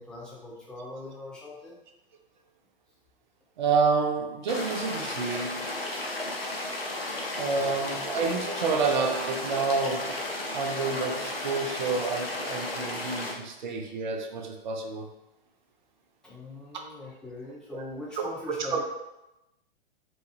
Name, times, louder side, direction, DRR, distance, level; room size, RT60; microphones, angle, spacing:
voice 1, 0.0-1.8 7.5-8.0 16.2-18.8, left 2 dB, 5° left, -6 dB, 0.8 m, -42 dB
voice 2, 3.6-5.7 7.4-10.2 10.5-15.1 17.7-17.8 18.2-18.3 18.7-18.8, right 4 dB, 50° right, 3 dB, 0.7 m, -29 dB
sound 1, 4.5-13.3, left 2 dB, 85° left, 0.8 m, -34 dB
4.3 x 2.2 x 3.1 m, 0.92 s
figure-of-eight pair, 110°, 29 cm